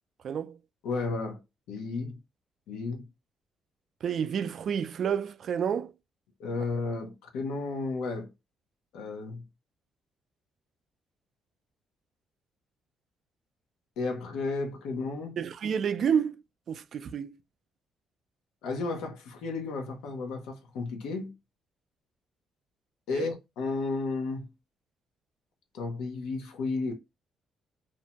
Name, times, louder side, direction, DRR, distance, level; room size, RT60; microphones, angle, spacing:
voice 1, 0.2-0.6 4.0-5.9 15.4-16.4 16.7-17.4 23.1-23.3, right 7 dB, 60° right, 0.3 m, -29 dB
voice 2, 0.8-1.4 1.7-2.2 2.7-3.0 6.4-8.3 8.9-9.4 14.0-15.4 18.6-21.3 23.1-24.5 25.7-26.9, left 3 dB, 90° left, 0.6 m, -33 dB
2.6 x 2.1 x 2.8 m
cardioid pair, 90°, 0 cm